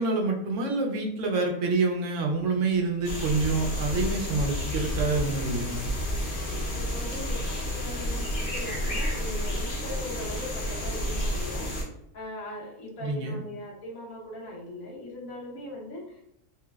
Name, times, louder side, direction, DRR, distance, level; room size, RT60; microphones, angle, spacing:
voice 1, 0.0-5.9 13.0-13.4, right 3 dB, 65° right, 2 dB, 0.9 m, -27 dB
sound 1, 3.0-11.8, equal, 50° left, 0.7 m, -30 dB
voice 2, 6.9-16.4, left 1 dB, 75° left, -2 dB, 1.3 m, -40 dB
3.1 x 3.0 x 2.3 m, 0.80 s
omnidirectional pair, 1.5 m